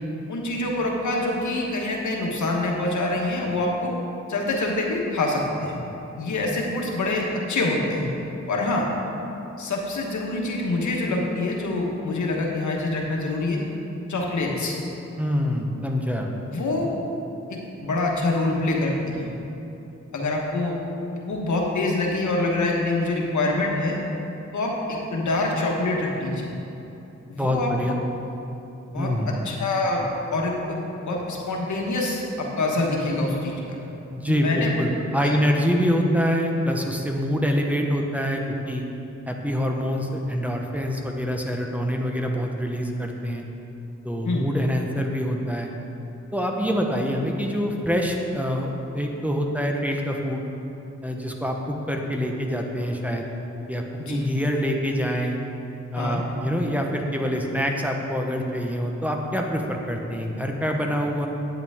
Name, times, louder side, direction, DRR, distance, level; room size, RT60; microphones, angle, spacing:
voice 1, 0.3-3.9 4.3-5.8 6.2-8.1 8.5-8.9 9.6-13.6 14.1-14.7 16.5-16.9 17.5-19.3 20.1-20.7 21.3-24.0 24.5-26.5 27.3-27.7 28.9-29.1 29.4-30.8 31.0-33.8 34.3-34.7 35.2-35.3 44.2-44.5 54.0-54.2 56.0-56.2, left 2 dB, 80° left, -1 dB, 1.3 m, -25 dB
voice 2, 15.2-16.3 27.3-28.0 28.9-29.3 34.1-38.9 39.3-43.4 44.0-45.7 46.3-50.4 51.0-53.3 53.7-55.4 55.9-61.3, equal, 5° right, 1 dB, 1.0 m, -25 dB
9.1 x 8.1 x 3.6 m, 3.0 s
cardioid pair, 65°, 29 cm